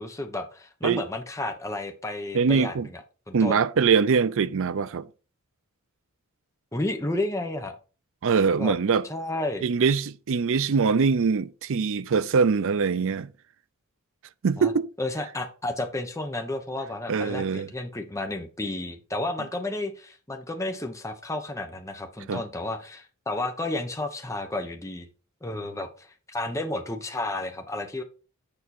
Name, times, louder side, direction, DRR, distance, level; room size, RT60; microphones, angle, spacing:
voice 1, 0.0-3.0 3.3-3.6 6.7-7.8 8.6-8.7 9.0-9.6 14.6-14.7 15.0-25.1 25.4-28.0, left 2 dB, 15° left, 0.9 m, -32 dB
voice 2, 2.3-2.9 3.3-5.1 8.2-9.1 9.6-13.3 14.4-14.9 17.1-17.7 22.3-22.4, right 5 dB, 60° right, 0.5 m, -23 dB
7.0 x 5.5 x 4.3 m
head